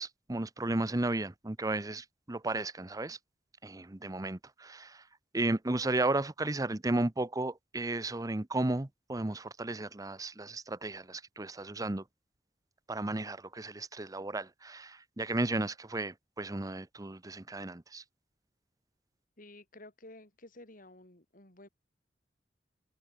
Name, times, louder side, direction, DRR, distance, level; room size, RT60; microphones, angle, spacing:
voice 1, 0.0-3.2 3.6-5.0 5.3-12.0 12.9-18.0, right 2 dB, 20° right, 0.8 m, -34 dB
voice 2, 19.4-21.7, left 2 dB, 50° left, 5.4 m, -52 dB
head